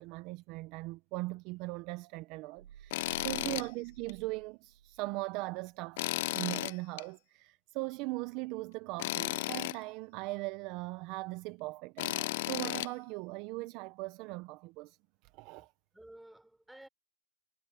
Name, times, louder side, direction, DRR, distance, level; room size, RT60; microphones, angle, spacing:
voice 1, 0.0-15.0 15.3-15.7, right 23 dB, 30° right, 0.5 m, -40 dB
sound 1, 2.6-5.3, right 10 dB, 75° right, 6.7 m, -52 dB
Tools, 2.9-3.7 4.1-4.2 6.0-7.0 9.0-9.8 12.0-12.9, left 18 dB, 45° left, 0.3 m, -34 dB
voice 2, 3.3-3.7 15.9-16.9, right 1 dB, ahead, 5.2 m, -54 dB
hypercardioid pair, 165°, 0 cm